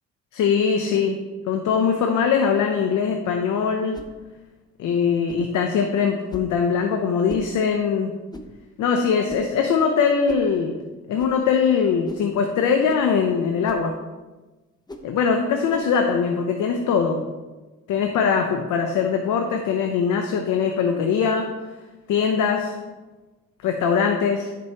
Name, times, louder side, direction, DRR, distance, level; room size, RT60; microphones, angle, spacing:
voice 1, 0.3-1.2 1.5-4.0 4.8-8.1 8.8-10.8 11.1-13.9 15.0-17.3 17.9-21.5 22.1-22.8 23.6-24.5, left 6 dB, 80° left, 4 dB, 0.8 m, -21 dB
sound 1, 3.9-4.1 5.3-5.5 6.3-6.5 7.3-7.5 8.3-8.5 9.3-9.5 10.3-10.5 11.2-11.4 12.1-12.3 12.9-13.1 13.6-13.9 14.9-15.1 15.7-15.9, left 1 dB, 15° left, 0.8 m, -39 dB
10.5 x 6.1 x 3.0 m, 1.2 s
cardioid pair, 90°, 30 cm